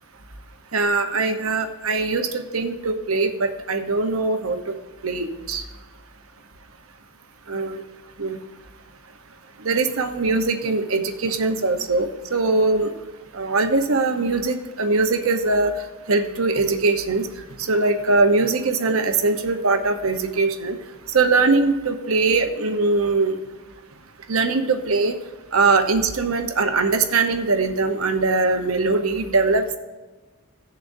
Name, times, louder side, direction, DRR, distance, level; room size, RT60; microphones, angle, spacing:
voice 1, 0.7-4.6 5.0-5.6 7.5-7.8 8.2-8.4 9.6-12.9 13.3-15.7 16.1-17.3 17.6-20.8 21.1-23.3 24.3-25.1 25.5-29.8, right 3 dB, 85° right, 6 dB, 1.0 m, -21 dB
17.5 x 7.1 x 2.7 m, 1.3 s
head